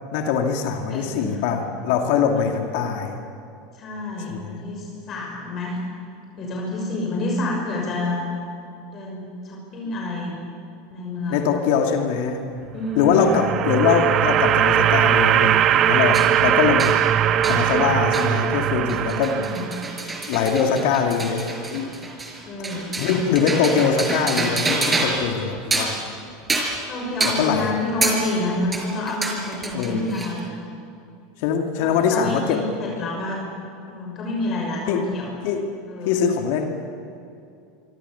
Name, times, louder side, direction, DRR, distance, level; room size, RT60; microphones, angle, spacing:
voice 1, 0.1-3.2 4.3-4.6 11.3-12.5 13.0-17.1 17.5-19.4 20.3-21.4 21.7-21.9 23.0-26.0 27.2-27.7 29.7-30.1 31.4-32.6 34.9-35.0 35.4-35.7 36.0-36.7, left 6 dB, 60° left, 4 dB, 2.3 m, -22 dB
voice 2, 0.9-1.4 2.3-2.4 3.7-5.8 6.4-8.3 8.9-10.4 10.9-11.5 12.7-13.2 19.2-19.7 22.4-23.0 26.9-30.6 31.8-33.4 33.9-35.4 35.9-36.3, left 2 dB, 40° left, -1 dB, 6.3 m, -28 dB
sound 1, 12.9-20.0, right 11 dB, 40° right, 0.9 m, -20 dB
sound 2, 16.1-16.3 16.8-17.0 17.4-17.6 18.1-18.3 18.6-25.3 25.6-26.0 26.5-26.8 27.2-27.4 28.0-28.2 28.7-30.4, right 3 dB, 15° right, 5.4 m, -27 dB
26.0 x 25.5 x 7.0 m, 2.6 s
figure-of-eight pair, 80°, 0 cm